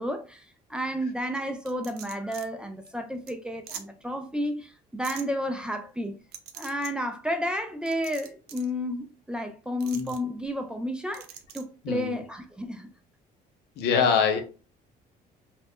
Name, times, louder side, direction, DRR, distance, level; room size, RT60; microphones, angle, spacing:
voice 1, 0.0-6.2 6.6-11.3 11.5-12.9, equal, 5° right, 0.4 m, -31 dB
sound 1, 1.7-2.5 2.9-3.0 3.3-3.4 3.7-3.8 5.0-5.2 6.3-6.9 7.9-8.7 9.8-10.2 11.1-11.6, right 8 dB, 75° right, 0.5 m, -42 dB
voice 2, 11.8-12.2 13.8-14.4, left 6 dB, 80° left, 0.6 m, -24 dB
2.5 x 2.0 x 3.4 m
cardioid pair, 110°, 17 cm